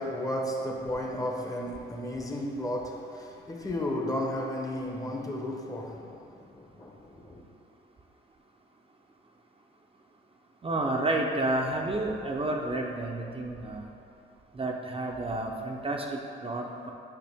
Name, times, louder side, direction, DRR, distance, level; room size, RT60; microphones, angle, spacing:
voice 1, 0.0-7.4, left 1 dB, 15° left, 0 dB, 1.0 m, -34 dB
voice 2, 10.6-13.9 14.5-16.9, right 2 dB, 30° right, 0 dB, 0.7 m, -30 dB
8.8 x 5.6 x 3.5 m, 2.6 s
cardioid pair, 90°, 20 cm